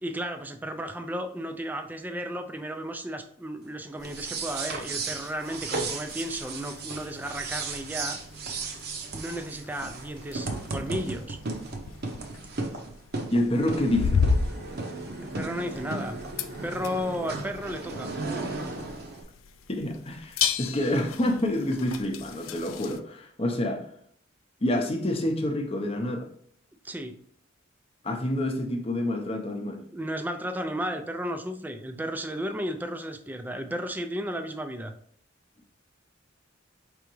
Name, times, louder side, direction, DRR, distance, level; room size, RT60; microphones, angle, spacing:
voice 1, 0.0-8.2 9.1-11.4 15.2-16.2 16.6-18.1 26.8-27.1 29.9-34.9, equal, 10° right, 0.3 m, -34 dB
sound 1, 4.0-23.0, left 6 dB, 85° left, 0.4 m, -35 dB
sound 2, 4.0-19.2, right 3 dB, 50° right, 0.7 m, -35 dB
voice 2, 13.3-14.2 19.7-23.9 24.6-26.3 28.0-29.8, left 1 dB, 30° left, 0.6 m, -28 dB
5.0 x 3.4 x 3.0 m
head